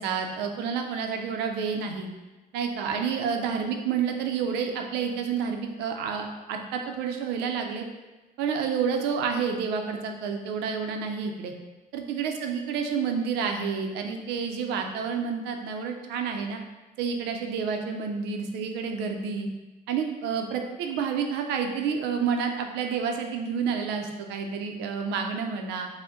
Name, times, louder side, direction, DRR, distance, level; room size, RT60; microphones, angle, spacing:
voice 1, 0.0-2.1 2.5-7.9 8.4-11.5 11.9-16.6 17.0-19.5 19.9-25.9, right 6 dB, 90° right, 4 dB, 0.6 m, -29 dB
5.0 x 2.1 x 3.7 m, 1.2 s
cardioid pair, 110°, 17 cm